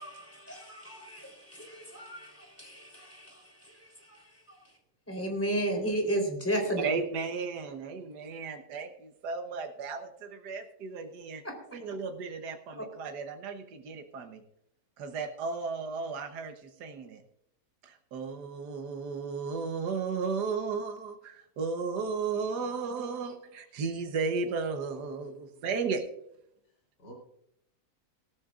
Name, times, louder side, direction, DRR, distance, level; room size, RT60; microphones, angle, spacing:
voice 1, 0.0-4.8 5.1-6.9 12.8-12.9, right 1 dB, 10° left, 3.6 m, -34 dB
voice 2, 6.8-11.4 11.7-14.4 15.0-17.2 17.8-26.0, right 4 dB, 70° right, 1.7 m, -34 dB
voice 3, 22.3-23.3 25.0-25.1 25.3-25.4 27.0-27.1, right 1 dB, 80° left, 4.4 m, -52 dB
18.5 x 14.0 x 2.5 m
omnidirectional pair, 1.8 m